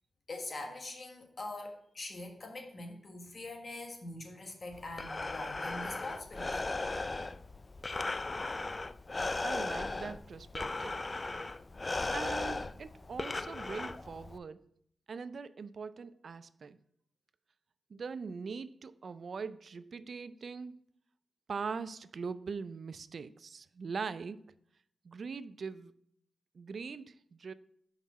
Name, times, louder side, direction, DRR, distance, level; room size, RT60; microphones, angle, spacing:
voice 1, 0.3-6.7, left 2 dB, 50° left, 3 dB, 1.4 m, -43 dB
Breathing, 4.7-14.4, left 2 dB, 35° left, 0.3 m, -37 dB
voice 2, 9.4-11.0 12.1-14.7 15.1-16.8 17.9-20.8 21.5-24.4 25.0-25.9 26.5-27.5, right 5 dB, 65° right, 14 dB, 0.3 m, -41 dB
5.4 x 4.7 x 5.4 m, 0.68 s
cardioid pair, 70°, 0 cm